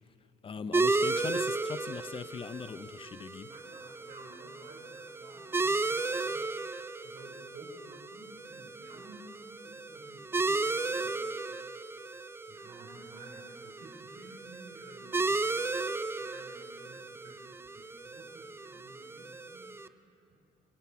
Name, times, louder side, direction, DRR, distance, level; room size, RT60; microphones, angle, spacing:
voice 1, 0.4-3.5, left 6 dB, 30° left, 15 dB, 0.6 m, -40 dB
sound 1, 0.7-19.9, right 3 dB, 15° right, 0.6 m, -34 dB
voice 2, 3.5-6.4 7.0-11.4 12.5-15.4 16.2-20.0 20.3-20.4, right 2 dB, 55° right, -2 dB, 4.1 m, -53 dB
28.0 x 17.5 x 7.1 m, 2.7 s
cardioid pair, 110°, 17 cm